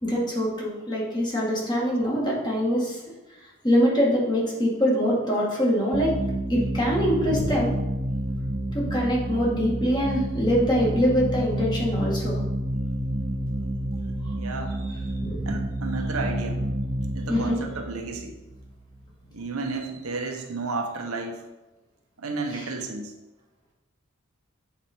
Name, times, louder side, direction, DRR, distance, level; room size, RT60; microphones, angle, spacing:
voice 1, 0.0-3.0 3.6-6.1 6.5-7.7 8.7-12.4 15.2-15.4 17.3-17.6 22.5-22.6, equal, 20° left, -4 dB, 1.9 m, -24 dB
sound 1, 5.9-19.2, right 1 dB, 25° right, 0.9 m, -29 dB
voice 2, 14.4-15.2 15.5-16.6 17.1-18.4 19.3-21.4 22.2-23.1, right 3 dB, 85° right, 3 dB, 1.0 m, -32 dB
7.8 x 4.9 x 4.5 m, 1.0 s
head